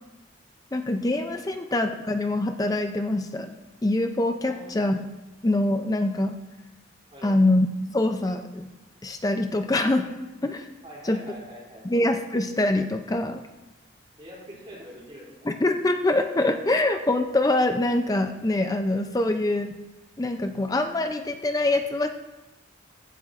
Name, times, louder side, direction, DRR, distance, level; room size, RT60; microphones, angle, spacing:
voice 1, 0.7-3.5 3.8-5.0 5.4-6.4 7.2-7.7 7.9-8.7 9.0-10.1 10.4-10.7 11.0-11.2 11.8-13.4 15.5-19.8 20.2-22.1, left 2 dB, 20° left, 7 dB, 0.4 m, -24 dB
voice 2, 10.8-11.8 14.2-15.3 19.2-19.3, equal, 30° right, -5 dB, 2.9 m, -44 dB
15.0 x 10.0 x 2.5 m, 1.1 s
head